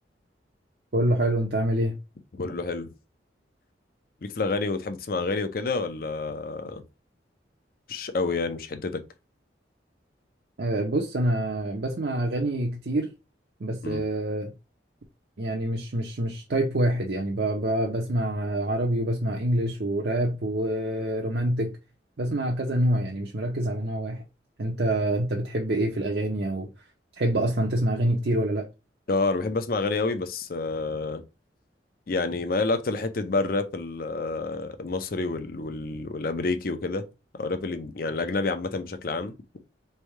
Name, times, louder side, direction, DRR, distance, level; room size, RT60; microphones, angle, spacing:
voice 1, 0.9-2.0 10.6-13.1 13.6-14.5 15.4-21.8 22.2-24.2 24.6-26.7 27.2-28.7, right 1 dB, 60° right, 0.6 m, -26 dB
voice 2, 2.3-2.9 4.2-6.8 7.9-9.0 13.8-14.0 29.1-31.2 32.1-37.0 37.3-39.3, left 3 dB, 55° left, 0.6 m, -28 dB
3.4 x 2.7 x 4.5 m
head